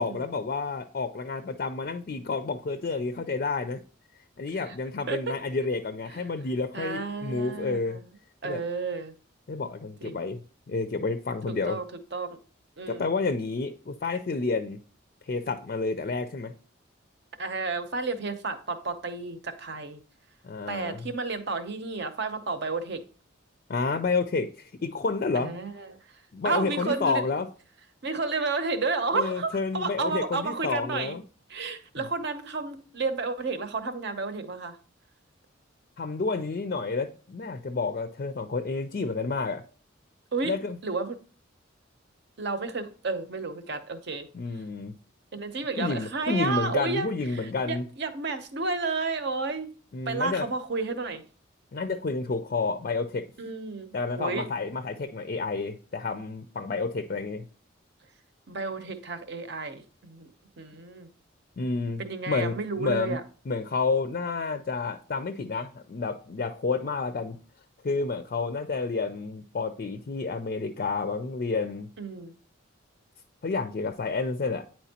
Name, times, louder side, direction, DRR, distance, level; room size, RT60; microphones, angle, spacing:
voice 1, 0.0-3.8 4.4-8.0 8.4-8.6 9.5-10.4 10.7-11.8 12.9-14.8 15.2-16.5 20.4-21.1 23.7-25.6 26.3-27.5 29.1-31.2 32.0-32.1 36.0-39.6 40.4-40.8 44.3-44.9 45.8-47.9 49.9-50.5 51.7-53.3 53.9-57.4 61.6-63.2 63.5-67.4 67.8-71.9 73.4-74.7, left 4 dB, 45° left, 0.4 m, -30 dB
voice 2, 6.7-8.0 8.4-9.1 10.0-10.2 11.5-11.8 12.1-12.4 12.8-13.1 17.4-20.0 20.7-23.0 25.3-25.9 26.4-27.2 28.0-31.2 31.5-34.8 40.3-40.5 40.8-41.2 42.4-44.3 45.3-49.7 50.1-51.2 53.4-54.4 57.1-57.2 58.5-60.3 60.6-61.1 62.0-63.2 72.0-72.3, right 3 dB, 55° right, 0.8 m, -31 dB
9.0 x 4.4 x 2.8 m
head